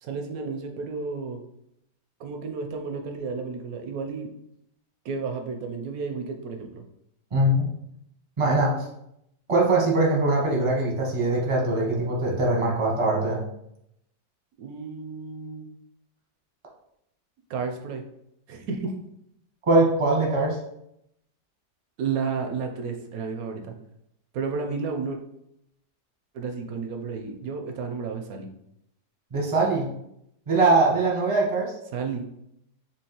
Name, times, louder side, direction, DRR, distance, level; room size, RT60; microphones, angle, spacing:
voice 1, 0.0-1.4 2.2-4.3 5.0-6.8 14.6-15.7 17.5-18.0 18.5-18.9 22.0-23.7 24.3-25.2 26.3-28.5 31.9-32.2, right 5 dB, 70° right, 4 dB, 0.9 m, -32 dB
voice 2, 7.3-7.7 8.4-8.9 9.5-13.4 19.6-20.6 29.3-29.9 30.5-31.7, right 2 dB, 30° right, -2 dB, 0.6 m, -22 dB
4.6 x 2.9 x 2.9 m, 0.78 s
omnidirectional pair, 1.8 m